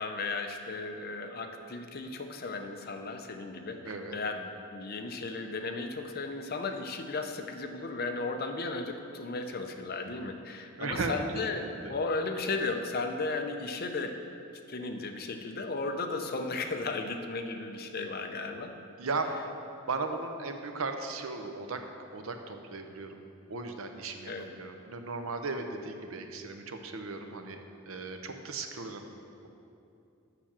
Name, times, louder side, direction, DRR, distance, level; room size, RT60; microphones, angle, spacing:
voice 1, 0.0-14.1 14.7-18.7 24.3-24.5, left 3 dB, 45° left, 5 dB, 0.6 m, -35 dB
voice 2, 3.8-4.2 10.8-12.0 19.0-19.5 19.9-23.2 23.5-27.6 27.9-29.0, right 3 dB, 75° right, 6 dB, 0.7 m, -36 dB
6.9 x 5.9 x 7.3 m, 2.6 s
head